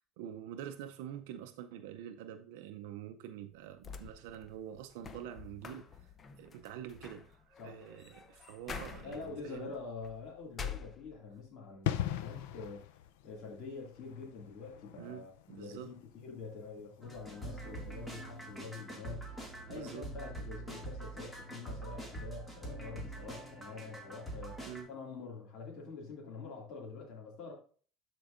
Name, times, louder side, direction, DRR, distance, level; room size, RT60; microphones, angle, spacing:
voice 1, 0.0-9.7 15.0-15.9 19.7-20.1 24.7-24.9, right 10 dB, 85° right, 0.5 m, -46 dB
sound 1, 3.5-11.5 11.9-12.7, left 6 dB, 30° left, 0.7 m, -48 dB
voice 2, 9.0-19.4 19.7-24.6 24.9-27.5, left 4 dB, 55° left, 2.2 m, -46 dB
sound 2, 11.8-18.3 18.6-18.8, left 11 dB, 90° left, 0.5 m, -41 dB
sound 3, 17.0-24.8, right 2 dB, 10° left, 2.1 m, -44 dB
12.0 x 4.5 x 2.5 m
supercardioid pair, 125°, 0 cm